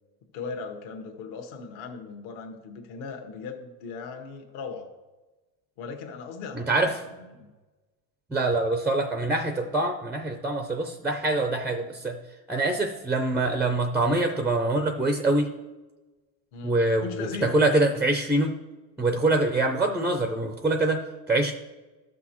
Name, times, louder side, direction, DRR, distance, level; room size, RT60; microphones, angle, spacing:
voice 1, 0.3-4.9 5.8-7.5 16.5-17.5, left 5 dB, 70° left, 5 dB, 1.4 m, -38 dB
voice 2, 6.5-6.9 8.3-12.2 12.5-15.5 16.6-18.5 19.0-21.0 21.3-21.5, right 2 dB, 5° right, 5 dB, 0.3 m, -24 dB
13.5 x 6.2 x 3.0 m, 1.2 s
supercardioid pair, 110°, 50 cm